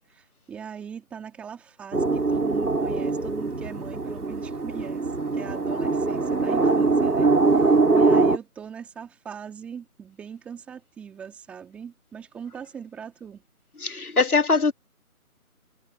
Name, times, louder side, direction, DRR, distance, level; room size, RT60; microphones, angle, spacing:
voice 1, 0.1-5.1 5.3-13.4, right 7 dB, 5° right, 2.5 m, -41 dB
sound 1, 1.9-8.4, right 3 dB, 90° right, 3.0 m, -22 dB
voice 2, 13.8-14.7, left 4 dB, 75° left, 1.8 m, -21 dB
figure-of-eight pair, 165°, 44 cm